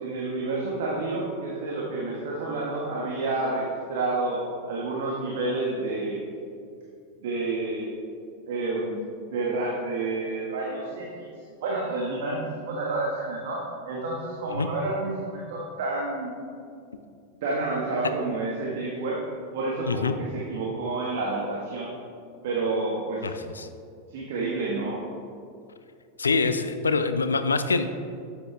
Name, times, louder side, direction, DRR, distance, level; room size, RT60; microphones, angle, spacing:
voice 1, 0.0-3.6 3.9-6.2 7.2-7.9 8.5-9.0 9.3-11.3 11.6-16.3 17.4-19.2 19.5-21.9 22.4-23.4 24.1-25.0, right 2 dB, 55° right, -4 dB, 1.6 m, -29 dB
voice 2, 23.2-23.7 26.2-27.9, left 4 dB, 75° left, 10 dB, 0.5 m, -25 dB
12.0 x 8.1 x 3.5 m, 2.4 s
figure-of-eight pair, 90°, 0 cm